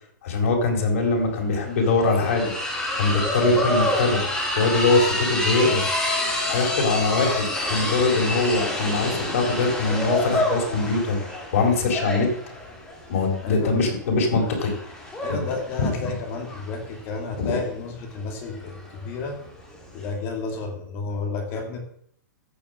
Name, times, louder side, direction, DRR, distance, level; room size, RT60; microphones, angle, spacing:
voice 1, 0.2-2.5 2.9-4.2 4.6-5.8 6.4-11.2 11.5-12.3 13.1-14.7 15.3-15.4 15.8-16.1 17.3-17.6, left 3 dB, 50° left, 1 dB, 4.4 m, -22 dB
sound 1, 0.9-1.0 1.2-20.1, left 1 dB, 5° left, 2.7 m, -28 dB
voice 2, 13.4-13.9 15.2-19.4 19.9-21.8, left 4 dB, 25° left, 3 dB, 2.5 m, -32 dB
15.0 x 6.8 x 7.5 m, 0.66 s
hypercardioid pair, 170°, 10 cm